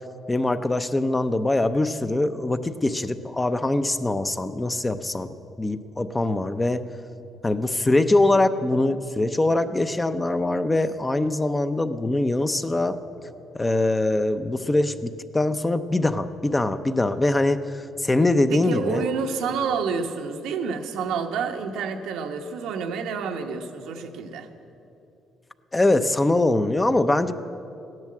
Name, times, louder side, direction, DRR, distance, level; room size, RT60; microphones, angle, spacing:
voice 1, 0.3-5.3 5.6-6.8 7.4-13.0 13.5-19.0 25.7-27.3, left 2 dB, 15° left, 10 dB, 0.6 m, -23 dB
voice 2, 18.5-24.5, right 5 dB, 90° right, 4 dB, 1.1 m, -29 dB
15.0 x 11.0 x 7.6 m, 2.7 s
cardioid pair, 110°, 0 cm